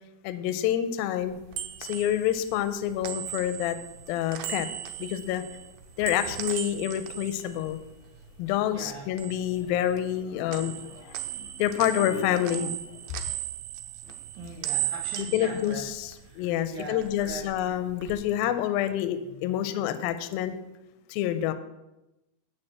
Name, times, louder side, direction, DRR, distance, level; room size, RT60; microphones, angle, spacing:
voice 1, 0.2-1.4 1.8-3.8 4.1-4.7 5.0-5.4 6.0-7.8 8.4-12.8 13.0-13.2 15.3-20.6 21.1-21.5, left 11 dB, 80° left, 11 dB, 2.3 m, -28 dB
sound 1, 1.2-8.5 8.8-10.2 10.5-16.5 16.8-18.1, right 12 dB, 80° right, 2.4 m, -37 dB
voice 2, 8.7-9.1 14.4-15.8 16.2-17.5, right 3 dB, 60° right, -1 dB, 2.3 m, -40 dB
8.8 x 4.8 x 7.5 m, 0.95 s
omnidirectional pair, 4.5 m